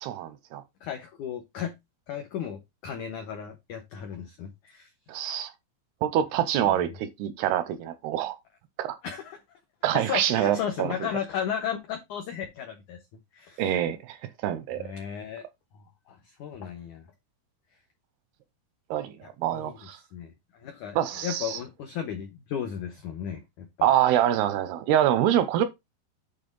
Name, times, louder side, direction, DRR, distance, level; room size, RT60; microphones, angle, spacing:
voice 1, 0.0-0.6 5.1-5.5 6.0-8.4 8.8-9.0 9.8-10.9 13.6-14.2 14.4-14.9 18.9-19.1 19.4-20.0 21.0-21.6 23.8-25.7, right 11 dB, 85° right, 2.4 m, -25 dB
voice 2, 0.8-1.7 2.1-4.9 6.6-6.9 9.0-9.4 9.9-13.0 13.3-13.6 14.8-15.4 16.1-17.0 19.5-19.8 20.1-20.3 20.6-23.9, left 8 dB, 80° left, 1.7 m, -35 dB
8.6 x 3.7 x 5.4 m
omnidirectional pair, 5.2 m